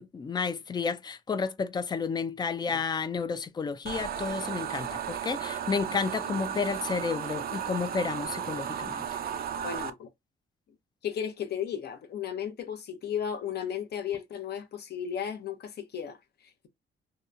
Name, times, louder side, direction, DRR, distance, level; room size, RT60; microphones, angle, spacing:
voice 1, 0.0-9.0, left 5 dB, 20° left, 0.3 m, -31 dB
sound 1, 3.9-9.9, right 9 dB, 50° right, 0.4 m, -34 dB
voice 2, 9.6-10.1 11.0-16.7, left 8 dB, 55° left, 0.7 m, -35 dB
2.9 x 2.1 x 2.3 m
cardioid pair, 90°, 20 cm